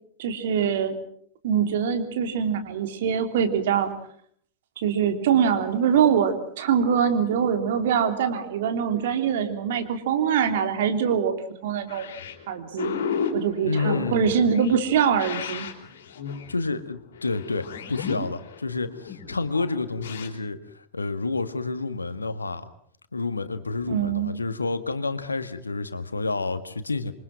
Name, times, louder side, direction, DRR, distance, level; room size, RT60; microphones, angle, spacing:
voice 1, 0.2-1.0 1.4-3.9 4.8-11.3 11.6-12.0 12.5-12.9 13.3-15.7 23.9-24.3, right 7 dB, 55° right, 7 dB, 3.3 m, -23 dB
sound 1, 11.9-20.3, left 7 dB, 60° left, 4.1 m, -34 dB
voice 2, 13.6-14.4 16.5-22.7 23.1-27.1, left 3 dB, 80° left, 11 dB, 1.8 m, -29 dB
27.5 x 24.0 x 6.0 m, 0.63 s
figure-of-eight pair, 90°, 0 cm